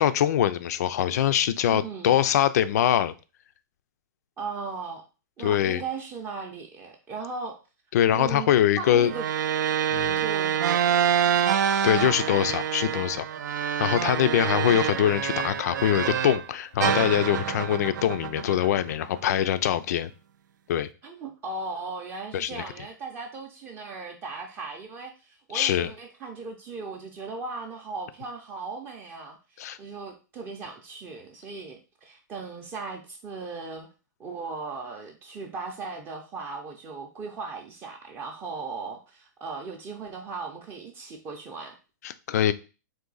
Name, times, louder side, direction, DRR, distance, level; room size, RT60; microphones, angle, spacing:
voice 1, 0.0-3.1 5.4-5.8 7.9-9.1 9.9-10.2 11.8-13.3 13.8-20.1 20.7-20.9 22.3-22.6 25.5-25.9 29.6-29.8 42.0-42.5, left 11 dB, 60° left, 13 dB, 0.4 m, -23 dB
voice 2, 1.7-2.1 4.4-5.0 5.4-7.6 8.1-9.3 10.2-10.5 14.4-14.9 19.2-19.7 21.0-33.9 34.2-41.8, right 4 dB, 20° right, 2 dB, 0.5 m, -37 dB
sound 1, 9.1-16.5 16.8-19.2, right 8 dB, 80° right, 0.4 m, -26 dB
3.8 x 2.6 x 3.9 m, 0.32 s
hypercardioid pair, 150°, 10 cm